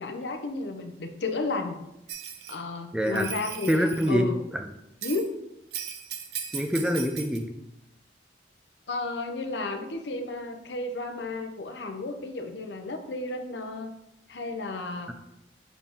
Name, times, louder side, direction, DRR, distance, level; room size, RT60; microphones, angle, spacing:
voice 1, 0.0-1.8 2.5-4.4 5.0-5.4 8.9-13.9 14.3-15.1, left 3 dB, 80° left, 6 dB, 0.8 m, -33 dB
Bell, 2.1-2.6 3.0-4.1 5.0-5.3 5.7-7.4, right 8 dB, 65° right, 0.7 m, -37 dB
voice 2, 2.9-3.3 3.7-4.6 6.5-7.6, equal, 5° right, 4 dB, 0.4 m, -25 dB
7.1 x 4.2 x 3.6 m, 0.86 s
head